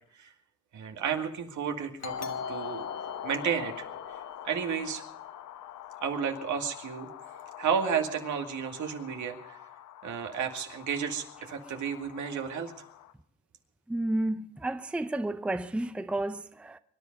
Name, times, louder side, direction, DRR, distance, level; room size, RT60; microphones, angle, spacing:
voice 1, 0.7-2.8 3.2-3.9 4.4-5.0 6.0-7.1 7.6-9.6 10.0-12.7, right 7 dB, 75° right, 2.3 m, -32 dB
Doorbell, 2.0-5.4, left 5 dB, 60° left, 1.5 m, -41 dB
sound 1, 2.1-13.1, left 11 dB, 80° left, 1.0 m, -44 dB
voice 2, 13.9-16.8, right 1 dB, 5° right, 0.6 m, -31 dB
24.0 x 11.0 x 5.3 m
cardioid pair, 90°, 30 cm